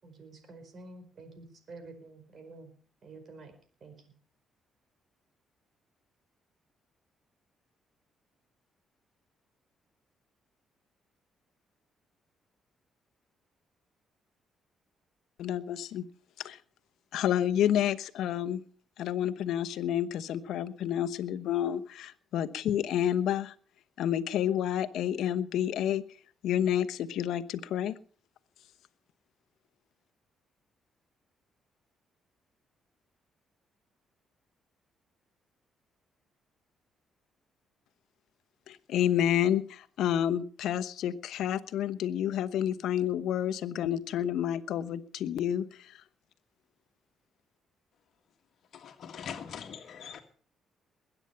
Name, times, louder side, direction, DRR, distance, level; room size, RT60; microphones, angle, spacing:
voice 1, 0.0-2.7 3.0-4.0, right 3 dB, 50° right, 8 dB, 4.7 m, -49 dB
voice 2, 15.4-16.0 16.4-16.6 17.1-18.6 19.0-23.5 24.0-26.0 26.4-27.9 38.7-46.0, left 10 dB, 80° left, 12 dB, 1.0 m, -29 dB
voice 3, 48.7-50.2, left 8 dB, 65° left, 5 dB, 1.7 m, -42 dB
21.5 x 9.1 x 5.7 m, 0.44 s
cardioid pair, 90°, 0 cm